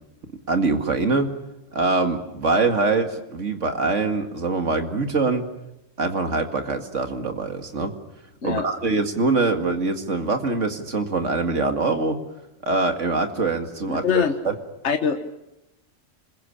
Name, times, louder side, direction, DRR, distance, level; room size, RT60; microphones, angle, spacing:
voice 1, 0.5-1.3 1.7-5.4 6.0-7.9 8.4-12.2 12.6-14.5, right 3 dB, 65° right, 6 dB, 2.4 m, -23 dB
voice 2, 13.9-14.3 14.8-15.3, left 6 dB, 60° left, 7 dB, 1.6 m, -23 dB
26.5 x 21.5 x 8.7 m, 0.89 s
omnidirectional pair, 1.4 m